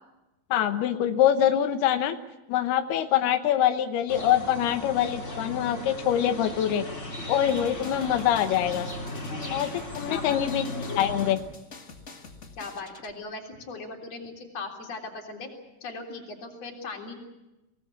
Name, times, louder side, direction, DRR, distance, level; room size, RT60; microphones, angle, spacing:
voice 1, 0.5-2.2 2.5-6.8 7.3-8.9 9.5-11.4, left 10 dB, 90° left, 8 dB, 3.1 m, -24 dB
sound 1, 4.1-11.3, left 1 dB, 20° left, 3.6 m, -36 dB
sound 2, 7.5-13.1, left 4 dB, 60° left, 0.7 m, -46 dB
voice 2, 10.1-10.4 12.6-15.5 15.8-17.2, left 3 dB, 45° left, 2 dB, 4.4 m, -38 dB
26.0 x 18.5 x 8.5 m, 0.99 s
omnidirectional pair, 4.4 m